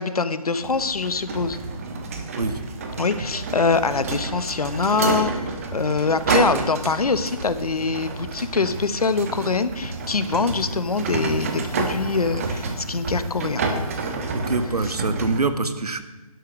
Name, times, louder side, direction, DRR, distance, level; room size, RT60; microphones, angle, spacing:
voice 1, 0.0-1.6 3.0-5.3 5.7-13.6, left 4 dB, 75° left, 13 dB, 1.2 m, -24 dB
sound 1, 0.6-15.4, right 3 dB, 25° right, 1.3 m, -29 dB
voice 2, 14.3-16.0, right 3 dB, 90° right, 11 dB, 1.6 m, -25 dB
11.5 x 11.5 x 6.2 m, 1.2 s
hypercardioid pair, 170°, 19 cm